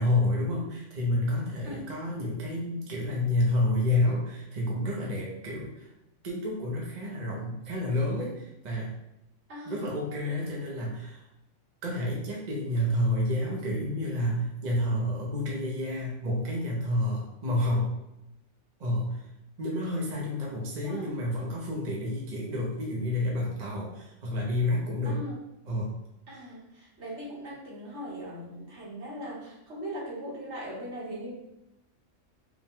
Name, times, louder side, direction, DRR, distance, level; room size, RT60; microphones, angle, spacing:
voice 1, 0.0-5.9 6.2-8.9 9.7-11.2 11.8-17.9 18.8-19.2 19.6-25.2 25.7-25.9, left 1 dB, 40° right, -3 dB, 0.7 m, -29 dB
voice 2, 9.5-9.9 20.8-21.1 25.0-25.4 26.3-31.3, equal, 60° right, -5 dB, 1.5 m, -39 dB
4.9 x 2.2 x 3.6 m, 0.88 s
omnidirectional pair, 1.3 m